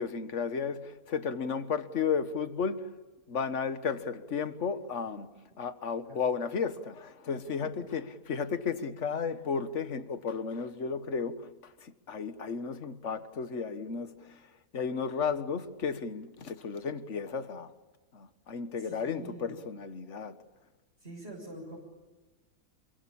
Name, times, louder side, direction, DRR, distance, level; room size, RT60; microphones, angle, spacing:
voice 1, 0.0-3.0 3.3-14.4 14.7-17.7 18.1-20.4, left 6 dB, 50° left, 1.6 m, -34 dB
voice 2, 18.8-19.5 21.0-21.8, right 1 dB, 45° right, 7.0 m, -45 dB
28.0 x 24.0 x 8.7 m
omnidirectional pair, 1.6 m